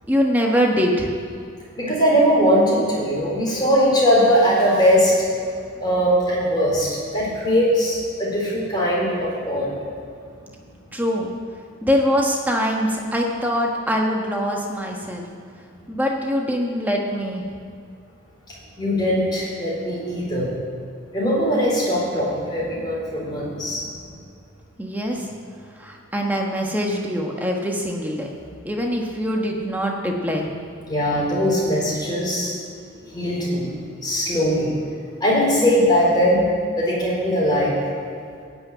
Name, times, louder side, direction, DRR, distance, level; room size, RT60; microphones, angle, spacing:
voice 1, 0.1-1.1 10.9-11.3 11.8-15.2 15.9-17.4 24.8-25.3 25.8-28.3 28.6-30.5, equal, 10° right, 0 dB, 1.3 m, -23 dB
voice 2, 1.8-5.3 5.8-9.7 18.8-20.6 21.1-23.9 30.9-32.7 33.1-33.7 34.0-34.8 35.2-36.5 36.7-37.8, equal, 20° left, -6 dB, 4.0 m, -20 dB
15.0 x 6.2 x 9.2 m, 2.2 s
head